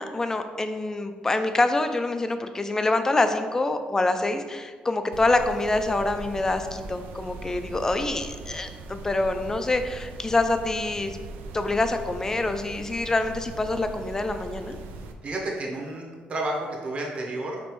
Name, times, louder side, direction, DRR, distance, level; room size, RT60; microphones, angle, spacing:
voice 1, 0.0-11.2 11.5-14.8, left 2 dB, 15° left, 8 dB, 0.3 m, -26 dB
sound 1, 5.1-15.1, right 3 dB, 90° right, 0.4 m, -40 dB
voice 2, 15.2-17.6, right 2 dB, 40° right, -1 dB, 1.0 m, -31 dB
5.3 x 2.9 x 3.0 m, 1.5 s
cardioid pair, 110°, 3 cm